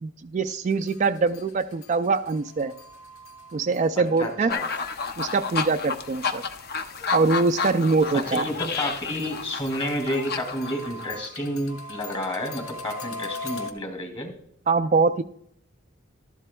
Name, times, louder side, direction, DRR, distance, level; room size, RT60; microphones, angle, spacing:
voice 1, 0.0-2.7 3.5-4.5 5.2-6.4 7.1-8.5 14.7-15.2, right 4 dB, 35° right, 9 dB, 0.3 m, -23 dB
sound 1, 0.7-6.9 7.3-13.7, left 2 dB, 90° left, 1.1 m, -42 dB
voice 2, 4.0-4.7 8.1-14.3, left 1 dB, 30° left, 5 dB, 2.4 m, -30 dB
sound 2, 4.5-11.3, left 5 dB, 50° left, 0.6 m, -31 dB
13.0 x 12.0 x 2.3 m, 0.69 s
head